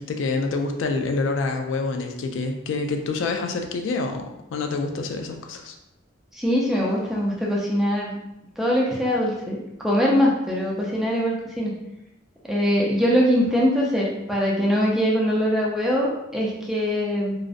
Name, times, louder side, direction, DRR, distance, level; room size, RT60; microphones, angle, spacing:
voice 1, 0.0-5.8, left 3 dB, 85° left, 4 dB, 0.3 m, -27 dB
voice 2, 6.3-8.1 8.6-11.7 12.5-17.4, equal, ahead, -4 dB, 0.3 m, -22 dB
2.4 x 2.0 x 2.4 m, 0.89 s
head